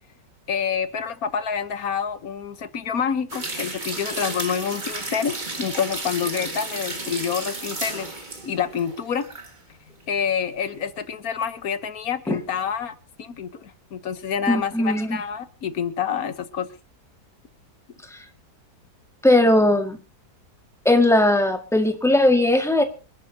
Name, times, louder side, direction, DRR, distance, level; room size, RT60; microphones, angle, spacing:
voice 1, 0.5-8.1 8.5-9.3 10.1-16.7, left 7 dB, 65° left, 12 dB, 1.5 m, -27 dB
sound 1, 3.3-9.5 9.9-10.0, right 2 dB, 30° right, 2.0 m, -33 dB
voice 2, 14.5-15.1 18.1-18.2 19.2-20.0 20.9-22.8, left 1 dB, ahead, 4 dB, 1.8 m, -18 dB
26.0 x 11.0 x 2.8 m, 0.32 s
omnidirectional pair, 1.7 m